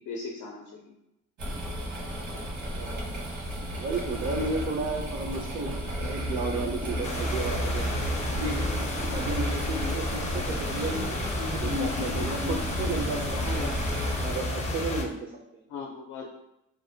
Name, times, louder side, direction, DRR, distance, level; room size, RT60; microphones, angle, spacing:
voice 1, 0.1-0.9 5.2-5.3 13.3-13.8 15.7-16.3, left 4 dB, 80° left, -1 dB, 0.5 m, -38 dB
sound 1, 1.4-14.4, equal, 70° right, 0.9 m, -33 dB
voice 2, 2.3-3.1 3.7-8.0 8.3-8.8 9.1-13.4 14.2-15.6, right 3 dB, 40° right, 0 dB, 0.4 m, -34 dB
sound 2, 4.9-14.1 14.4-14.5, left 4 dB, 85° right, 1.3 m, -40 dB
sound 3, 7.0-15.1, left 1 dB, 25° left, 0.4 m, -32 dB
2.5 x 2.0 x 2.6 m, 0.86 s
cardioid pair, 90°, 30 cm